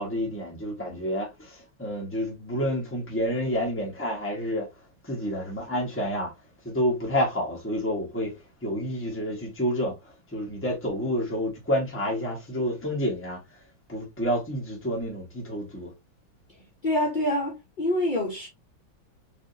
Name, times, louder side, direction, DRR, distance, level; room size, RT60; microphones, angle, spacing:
voice 1, 0.0-4.7 5.0-6.3 6.6-8.3 8.6-9.9 10.3-13.4 13.9-15.9, equal, 5° left, 1.2 m, -29 dB
voice 2, 16.8-18.5, left 1 dB, 50° left, 0.6 m, -26 dB
4.9 x 2.7 x 2.7 m
omnidirectional pair, 2.2 m